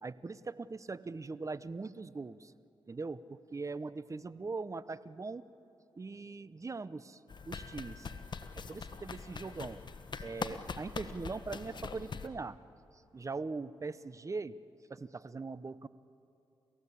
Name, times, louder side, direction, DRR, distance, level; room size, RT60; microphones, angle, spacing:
voice 1, 0.0-2.5 2.9-5.4 6.0-7.2 7.5-8.1 8.5-9.8 10.2-12.6 13.1-14.6 14.9-15.9, right 3 dB, 30° right, 16 dB, 0.8 m, -41 dB
sound 1, 7.3-12.3, left 5 dB, 50° left, 1.2 m, -43 dB
29.5 x 14.5 x 8.4 m, 2.7 s
supercardioid pair, 55°, 10 cm